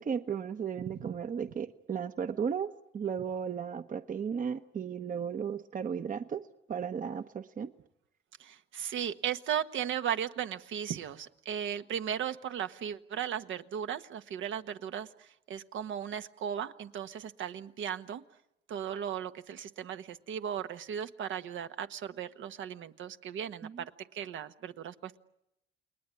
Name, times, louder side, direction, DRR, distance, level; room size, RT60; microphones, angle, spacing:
voice 1, 0.0-6.4 6.7-7.7 23.6-23.8, right 7 dB, 40° right, 10 dB, 1.0 m, -35 dB
voice 2, 0.8-1.1 8.4-18.2 18.7-25.2, right 9 dB, 75° right, 9 dB, 1.4 m, -36 dB
29.5 x 20.5 x 9.9 m, 0.84 s
cardioid pair, 90°, 20 cm